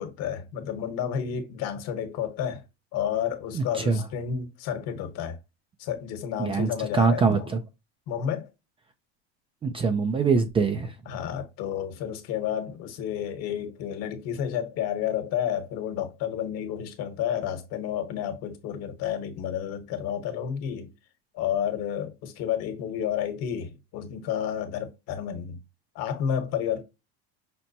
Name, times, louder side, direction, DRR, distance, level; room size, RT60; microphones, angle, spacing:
voice 1, 0.0-2.6 2.9-5.4 5.8-7.5 8.1-8.5 11.1-20.9 21.3-25.6 25.9-26.8, left 9 dB, 55° left, 1.2 m, -31 dB
voice 2, 3.5-4.1 6.4-7.6 9.6-11.0, right 4 dB, 20° right, 0.4 m, -24 dB
5.8 x 2.1 x 2.6 m
supercardioid pair, 135°, 31 cm